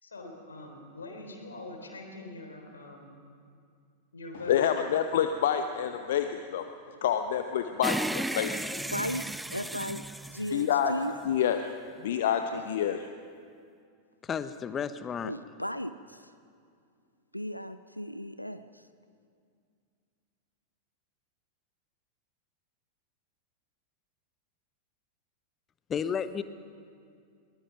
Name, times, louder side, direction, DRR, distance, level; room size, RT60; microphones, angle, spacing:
voice 1, 0.0-3.1 4.1-4.7, left 2 dB, 75° left, 3 dB, 3.5 m, -43 dB
voice 2, 4.5-6.6 7.0-8.7 10.5-10.9 11.2-11.7 12.0-13.0, left 9 dB, 55° left, 7 dB, 0.9 m, -27 dB
sound 1, 7.8-11.3, right 1 dB, 5° right, 0.5 m, -34 dB
voice 3, 8.9-10.0 10.3-11.1 12.5-12.6 15.2-16.3 17.3-18.8, equal, 90° left, 12 dB, 0.5 m, -36 dB
voice 4, 14.2-15.3 25.9-26.4, left 7 dB, 25° left, 13 dB, 0.9 m, -32 dB
22.5 x 20.5 x 5.9 m, 2.3 s
figure-of-eight pair, 90°, 0 cm